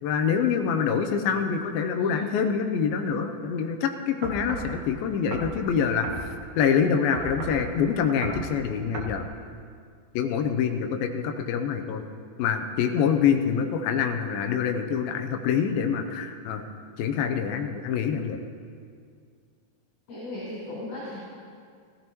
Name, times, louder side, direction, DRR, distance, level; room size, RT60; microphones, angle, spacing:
voice 1, 0.0-9.2 10.2-12.0 12.4-16.6 17.0-18.4, left 7 dB, 85° left, 6 dB, 2.5 m, -26 dB
voice 2, 1.9-2.3 20.1-21.2, left 2 dB, 60° left, -10 dB, 4.0 m, -36 dB
sound 1, 4.2-4.7 5.3-5.6 6.0-6.3 7.1-7.6 8.2-8.5 8.9-9.2, right 2 dB, 65° right, 2.5 m, -34 dB
16.0 x 15.5 x 3.0 m, 2.1 s
omnidirectional pair, 4.3 m